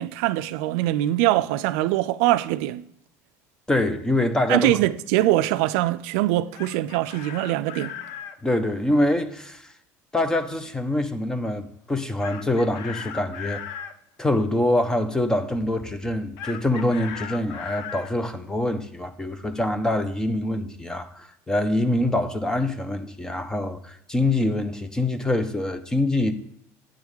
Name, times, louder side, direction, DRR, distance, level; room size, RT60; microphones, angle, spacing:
voice 1, 0.0-2.8 4.5-7.9, right 15 dB, 80° right, 0.4 m, -23 dB
voice 2, 3.7-4.7 8.4-9.7 10.1-13.8 14.2-26.3, left 1 dB, 10° left, 0.6 m, -25 dB
Chicken rooster, 6.3-8.4 12.2-14.0 16.4-18.1, left 8 dB, 65° left, 0.6 m, -37 dB
8.9 x 3.5 x 6.2 m
cardioid pair, 145°, 8 cm